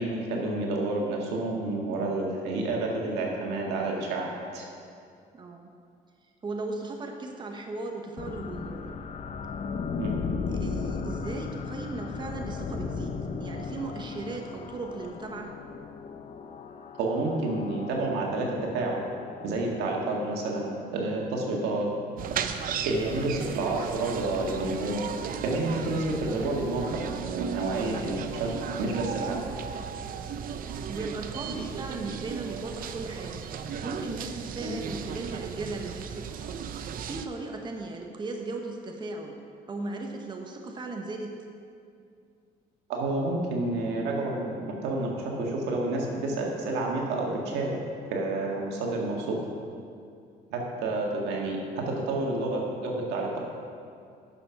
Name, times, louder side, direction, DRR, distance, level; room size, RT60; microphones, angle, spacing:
voice 1, 0.0-4.7 10.0-10.3 17.0-19.0 19.4-21.9 22.8-25.0 25.4-28.5 28.8-29.5 34.6-34.8 42.9-47.8 48.1-49.4 50.5-53.4, right 2 dB, 90° right, -1 dB, 1.9 m, -29 dB
voice 2, 5.3-5.7 6.2-8.9 10.5-15.6 30.8-33.4 33.8-36.4 37.1-39.4 39.7-41.5 51.9-52.2, right 2 dB, 25° right, 2 dB, 1.0 m, -37 dB
sound 1, 8.2-20.1, left 5 dB, 40° left, 0.7 m, -36 dB
sound 2, 22.2-37.3, right 7 dB, 55° right, 0.6 m, -36 dB
9.7 x 6.9 x 5.8 m, 2.4 s
cardioid pair, 110°, 17 cm